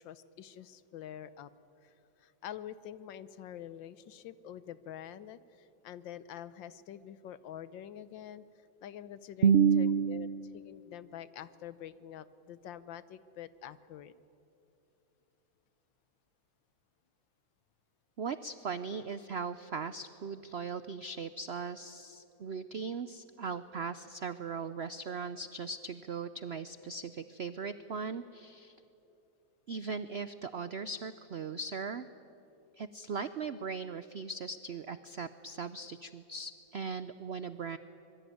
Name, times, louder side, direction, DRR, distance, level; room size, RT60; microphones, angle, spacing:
voice 1, 0.0-1.5 1.8-1.9 2.2-8.4 8.8-10.3 10.5-14.1, left 10 dB, 80° left, 15 dB, 1.6 m, -46 dB
voice 2, 9.4-10.6 18.2-28.8 29.7-32.1 32.8-37.8, right 6 dB, 85° right, 12 dB, 0.5 m, -35 dB
25.5 x 22.5 x 9.4 m, 2.8 s
omnidirectional pair, 2.0 m